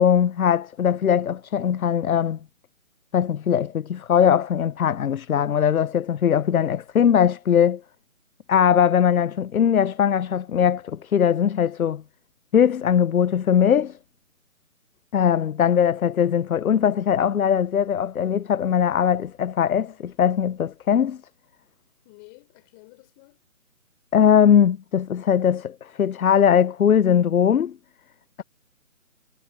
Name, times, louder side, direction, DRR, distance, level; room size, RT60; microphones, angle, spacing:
voice 1, 0.0-2.4 3.1-7.8 8.5-12.0 12.5-14.0 15.1-21.2 24.1-27.8, left 8 dB, 75° left, 0.7 m, -20 dB
voice 2, 22.0-23.4 28.4-28.5, left 28 dB, 15° left, 5.3 m, -50 dB
hypercardioid pair, 170°, 43 cm